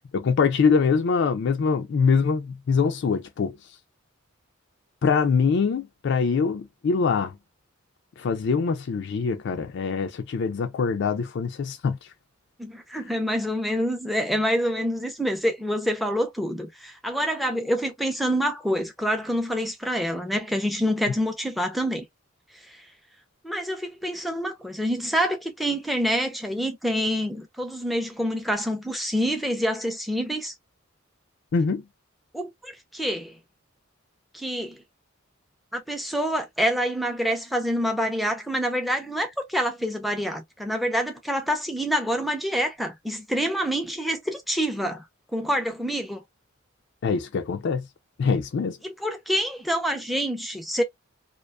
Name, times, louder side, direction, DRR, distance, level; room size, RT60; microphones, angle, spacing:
voice 1, 0.1-3.6 5.0-7.4 8.2-12.0 31.5-31.8 47.0-47.9 48.2-48.8, left 5 dB, 60° left, 0.4 m, -23 dB
voice 2, 12.6-22.1 23.4-30.5 32.3-33.4 34.3-34.8 35.7-45.0 45.3-46.2 48.8-50.8, equal, ahead, 0.5 m, -27 dB
2.4 x 2.2 x 2.3 m
head